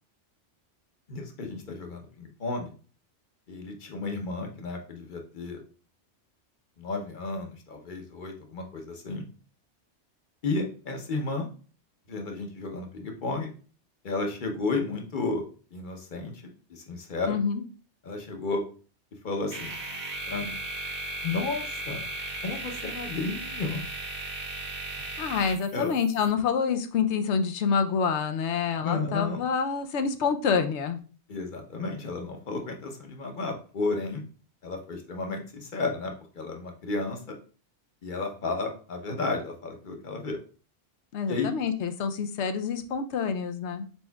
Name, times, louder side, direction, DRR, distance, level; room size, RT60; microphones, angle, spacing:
voice 1, 1.1-2.7 3.5-5.6 6.8-9.2 10.4-11.5 12.1-13.5 14.0-15.4 15.7-16.4 16.7-17.4 18.0-18.6 19.2-19.7 20.3-20.6 21.2-22.0 22.4-23.8 25.0-25.1 25.7-25.9 28.7-29.4 31.3-34.2 34.6-37.4 38.0-40.4 41.3-41.5, left 3 dB, 45° left, 3 dB, 0.9 m, -32 dB
voice 2, 17.3-17.6 25.2-31.0 41.1-43.9, left 6 dB, 75° left, 8 dB, 0.9 m, -27 dB
sound 1, 19.5-26.3, right 2 dB, 50° right, 1.2 m, -36 dB
4.4 x 4.3 x 2.3 m, 0.38 s
omnidirectional pair, 1.2 m